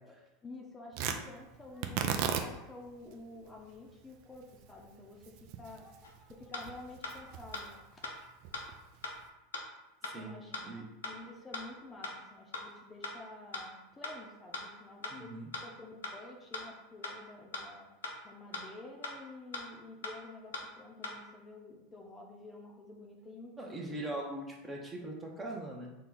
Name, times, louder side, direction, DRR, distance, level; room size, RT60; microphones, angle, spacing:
voice 1, 0.0-8.3 10.1-15.3 15.6-17.9 18.2-24.2, left 2 dB, 20° left, 0 dB, 0.7 m, -50 dB
Tearing, 0.9-9.3, right 7 dB, 55° right, 0.4 m, -39 dB
sound 1, 6.0-6.1 6.5-6.6 7.0-7.1 7.5-7.6 8.0-8.1 8.5-8.6 9.0-9.1 9.5-9.6 10.0-10.1 10.5-10.6 11.0-11.1 11.5-11.6 12.0-12.1 12.5-12.6 13.0-13.1 13.5-13.6 14.0-14.1 14.5-14.6 15.0-15.1 15.5-15.6 16.0-16.1 16.5-16.6 17.0-17.1 17.5-17.6 18.0-18.1 18.5-18.6 19.0-19.1 19.5-19.6 20.0-20.1 20.5-20.6 21.0-21.1, left 3 dB, 85° left, 0.6 m, -39 dB
voice 2, 10.0-10.3 10.6-10.8 15.1-15.5 23.6-25.9, right 1 dB, 20° right, 0 dB, 0.9 m, -41 dB
4.3 x 2.3 x 3.8 m, 1.0 s
hypercardioid pair, 85°, 0 cm